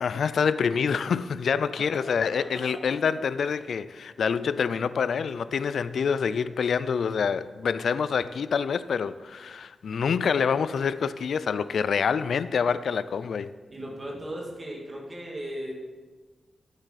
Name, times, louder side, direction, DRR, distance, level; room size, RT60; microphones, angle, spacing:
voice 1, 0.0-13.5, left 6 dB, 85° left, 0.3 m, -26 dB
voice 2, 13.7-15.7, equal, 25° right, 2.2 m, -36 dB
13.0 x 8.1 x 4.1 m
wide cardioid pair, 165°, 0 cm